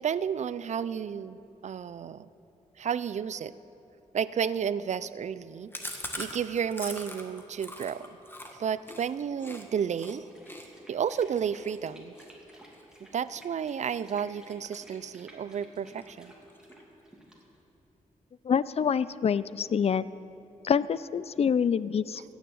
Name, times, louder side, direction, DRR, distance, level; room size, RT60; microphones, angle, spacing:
voice 1, 0.0-2.3 2.8-3.5 4.1-8.1 8.6-10.3 10.9-12.1 13.1-16.3, right 7 dB, 55° right, 16 dB, 0.4 m, -32 dB
Chewing mastication, 5.7-9.6 10.0-10.2 10.5-13.5 13.8-14.2 14.5-15.3 15.6-15.7 16.0-16.1 16.4-17.0, left 1 dB, 15° left, 1.5 m, -42 dB
sound 1, 10.3-17.6, right 1 dB, 5° right, 2.6 m, -54 dB
voice 2, 18.5-20.0 20.6-22.3, left 7 dB, 45° left, 18 dB, 0.4 m, -26 dB
16.0 x 7.1 x 7.8 m, 3.0 s
cardioid pair, 75°, 14 cm